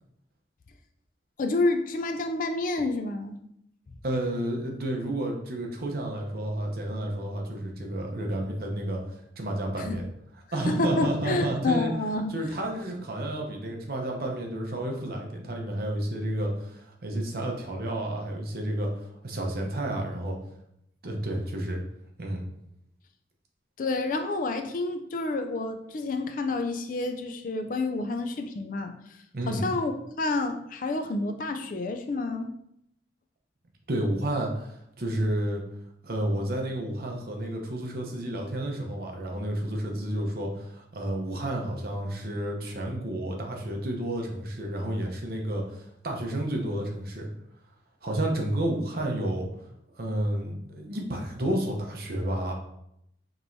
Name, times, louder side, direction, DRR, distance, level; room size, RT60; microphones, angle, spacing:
voice 1, 1.4-3.4 9.8-10.0 10.6-12.4 23.8-29.0 29.5-29.9 30.2-32.5, left 2 dB, 45° left, 7 dB, 0.4 m, -29 dB
voice 2, 4.0-10.1 10.5-11.9 12.3-20.4 21.0-21.8 22.2-22.4 29.3-29.7 33.9-35.6 36.0-47.3 48.0-49.5 49.9-52.5, right 1 dB, 55° right, 1 dB, 0.8 m, -31 dB
5.3 x 2.9 x 2.6 m, 0.77 s
head